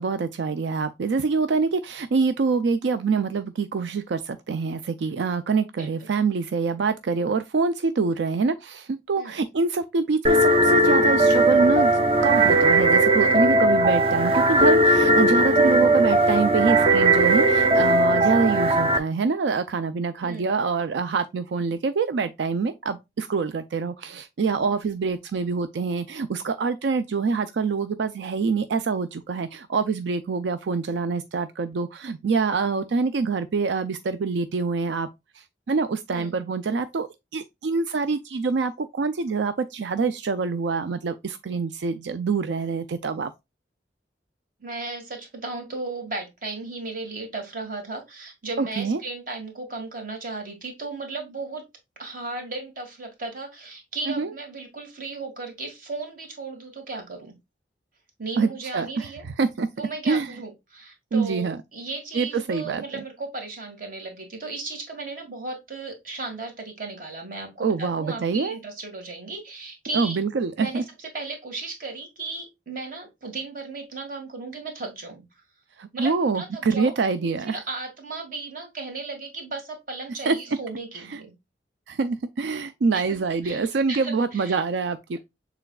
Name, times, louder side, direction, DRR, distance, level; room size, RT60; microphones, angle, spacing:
voice 1, 0.0-35.1 35.3-37.1 37.3-43.3 48.6-49.0 54.1-54.3 58.4-59.7 60.1-60.3 61.1-61.6 62.1-62.8 67.6-68.6 69.9-70.8 75.8-77.6 80.3-80.4 81.1-81.2 81.9-85.2, right 4 dB, 80° right, 0.4 m, -25 dB
voice 2, 5.8-6.1 9.2-9.4 18.1-18.7 20.2-20.5 24.7-24.8 36.1-36.4 44.6-51.6 52.0-57.3 58.2-59.2 59.8-70.2 70.6-75.2 75.9-81.3 82.9-83.2 83.4-84.6, right 3 dB, 50° right, 1.8 m, -35 dB
sound 1, 10.3-19.0, right 1 dB, 30° right, 0.6 m, -18 dB
6.9 x 3.4 x 2.2 m
head